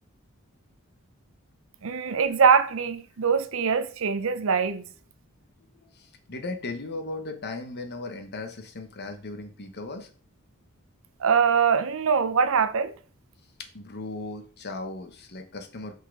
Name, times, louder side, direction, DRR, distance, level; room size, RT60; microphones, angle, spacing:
voice 1, 1.8-4.8 11.2-12.9, right 6 dB, 70° right, 0.6 m, -23 dB
voice 2, 5.9-10.1 13.6-15.9, left 2 dB, 50° left, 1.1 m, -37 dB
5.5 x 4.2 x 4.6 m
head